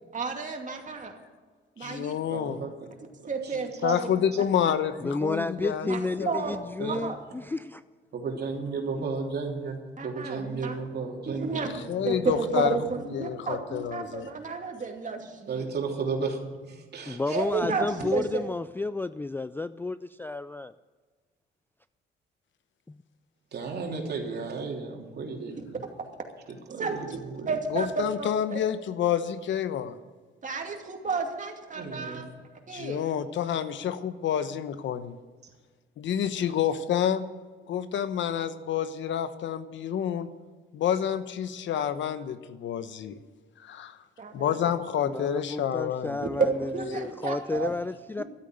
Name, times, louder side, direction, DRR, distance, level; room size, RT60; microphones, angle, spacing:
voice 1, 0.1-1.1 1.8-2.2 3.3-4.1 4.6-4.7 5.8-6.6 6.9-7.2 10.0-10.8 11.3-11.7 12.0-15.7 17.3-18.4 25.6-25.7 26.8-27.2 27.5-28.6 30.4-32.3 32.7-33.0 44.2-44.5 46.4-47.7 48.2-48.3, right 4 dB, 40° right, 3 dB, 2.5 m, -31 dB
voice 2, 1.8-2.6 3.5-6.4 11.7-12.8 13.1-14.3 27.7-30.0 32.7-35.2 36.0-37.3 37.7-40.3 40.7-43.2 43.6-44.0 44.3-46.3, left 9 dB, 70° left, 12 dB, 1.0 m, -29 dB
voice 3, 2.3-2.7 3.2-3.6 6.8-7.0 8.1-9.8 10.0-12.9 15.5-17.7 23.5-25.8 26.5-27.6 31.8-32.2, right 4 dB, 55° right, 1 dB, 3.1 m, -34 dB
voice 4, 5.0-7.8 17.1-20.7 22.9-23.0 45.0-48.2, left 3 dB, 10° left, 14 dB, 0.3 m, -31 dB
13.0 x 8.5 x 9.0 m, 1.5 s
cardioid pair, 90°, 20 cm